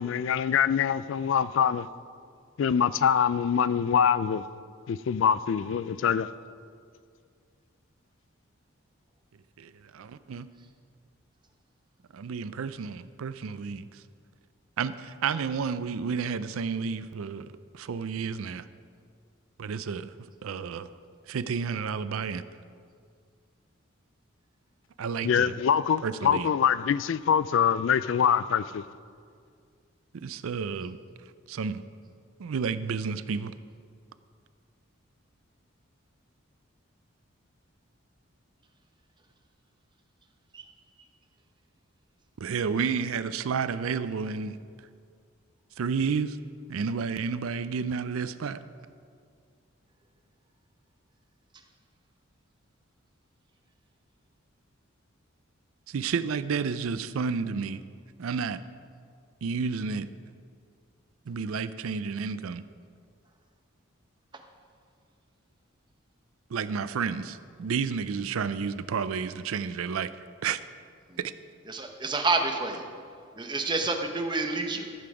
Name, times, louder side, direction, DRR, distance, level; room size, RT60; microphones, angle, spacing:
voice 1, 0.0-1.9 2.6-4.4 4.9-6.3 25.2-28.8, left 7 dB, 65° left, 0.3 m, -24 dB
voice 2, 9.6-10.5 12.1-14.0 14.8-18.7 19.6-20.1 20.4-20.9 21.3-22.4 25.0-25.5 26.0-26.5 30.1-31.0 31.5-31.8 32.4-33.5 42.4-44.6 45.8-46.4 46.7-48.6 55.9-57.8 58.2-58.6 59.4-60.1 61.3-62.6 66.5-70.1 70.4-70.6 71.2-71.3, right 5 dB, 85° right, 0.4 m, -31 dB
voice 3, 71.7-72.9 73.4-74.9, right 3 dB, 20° right, 0.9 m, -28 dB
14.0 x 7.8 x 4.9 m
head